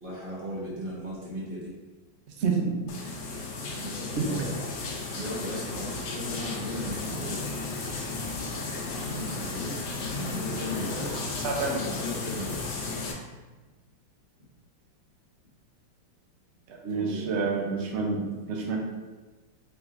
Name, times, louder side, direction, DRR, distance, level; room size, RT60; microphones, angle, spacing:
voice 1, 0.0-1.7 3.0-3.2 3.7-4.7 5.1-7.4 8.8-9.8 10.1-11.1 11.7-12.6 16.9-17.4 17.9-18.3, equal, 30° right, -7 dB, 1.3 m, -37 dB
sound 1, 2.9-13.1, left 3 dB, 75° left, 1.5 m, -34 dB
sound 2, 6.9-12.7, left 2 dB, 30° left, 1.0 m, -49 dB
voice 2, 11.4-11.8 16.7-18.8, right 4 dB, 75° right, 0 dB, 0.6 m, -28 dB
4.7 x 3.9 x 2.5 m, 1.2 s
omnidirectional pair, 2.1 m